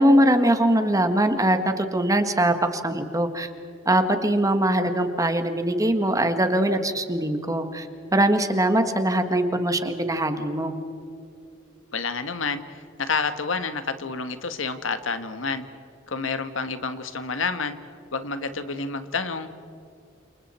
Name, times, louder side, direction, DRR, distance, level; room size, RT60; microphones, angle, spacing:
voice 1, 0.0-3.5 3.8-10.8, right 1 dB, 15° right, 8 dB, 1.5 m, -22 dB
voice 2, 11.9-12.6 13.0-15.7 16.1-17.8 18.1-19.5, left 4 dB, 75° left, 10 dB, 1.5 m, -29 dB
29.5 x 28.5 x 4.4 m, 2.6 s
head